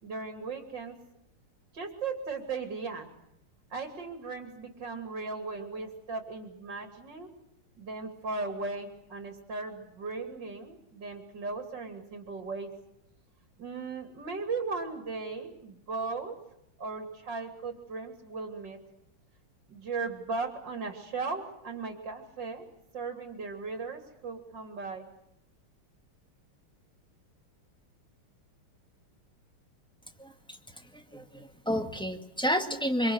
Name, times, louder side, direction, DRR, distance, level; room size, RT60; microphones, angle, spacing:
voice 1, 0.0-1.0 1.7-3.1 3.7-7.3 7.8-12.7 13.6-16.4 16.8-18.8 19.7-22.7 22.9-25.1, right 4 dB, 55° right, 5 dB, 3.5 m, -37 dB
voice 2, 30.2-30.6 30.9-33.1, equal, ahead, 5 dB, 1.9 m, -30 dB
26.0 x 25.5 x 8.1 m, 0.80 s
omnidirectional pair, 2.4 m